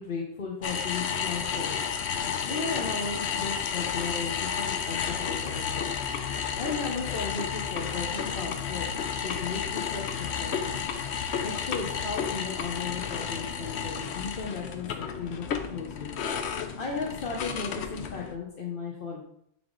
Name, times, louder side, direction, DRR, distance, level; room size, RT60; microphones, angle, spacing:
voice 1, 0.0-2.0 2.4-6.2 6.6-8.9 9.2-10.9 11.4-16.2 16.5-19.2, left 4 dB, 60° left, -1 dB, 1.1 m, -36 dB
sound 1, 0.6-18.4, left 7 dB, 90° left, 0.9 m, -32 dB
9.3 x 3.5 x 3.9 m, 0.72 s
omnidirectional pair, 1.1 m